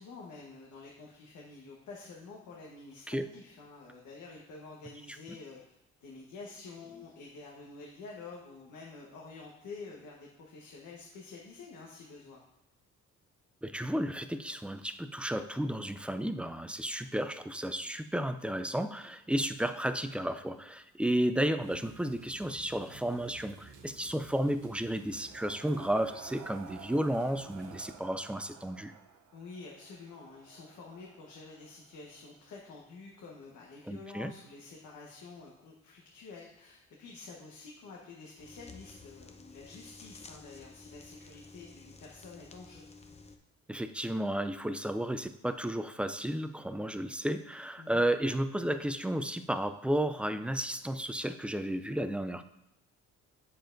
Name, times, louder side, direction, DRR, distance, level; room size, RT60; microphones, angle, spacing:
voice 1, 0.0-5.6 6.0-12.4 21.0-21.1 29.3-42.9 47.8-48.0, left 4 dB, 75° left, -2 dB, 1.2 m, -49 dB
voice 2, 13.6-28.9 33.9-34.3 43.7-52.4, right 1 dB, 5° right, 9 dB, 0.3 m, -33 dB
sound 1, 21.6-27.9, right 4 dB, 90° right, 1.0 m, -56 dB
sound 2, 24.7-32.4, right 7 dB, 60° right, 0.7 m, -53 dB
sound 3, 38.4-43.4, left 3 dB, 20° left, 0.7 m, -52 dB
7.7 x 6.8 x 2.6 m, 0.92 s
cardioid pair, 90°, 30 cm